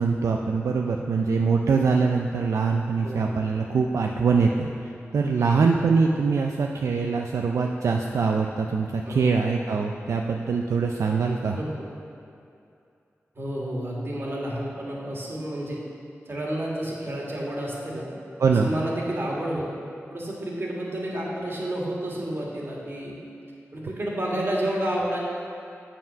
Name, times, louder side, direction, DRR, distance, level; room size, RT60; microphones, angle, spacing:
voice 1, 0.0-11.6 18.4-18.7, right 5 dB, 80° right, 1 dB, 0.4 m, -23 dB
voice 2, 3.0-3.3 5.4-5.9 6.9-7.0 9.1-9.3 11.6-11.9 13.4-15.8 16.3-18.1 18.5-19.7 20.1-23.2 23.7-25.2, right 1 dB, 50° right, -4 dB, 1.9 m, -30 dB
7.2 x 5.8 x 5.7 m, 2.5 s
cardioid pair, 50°, 5 cm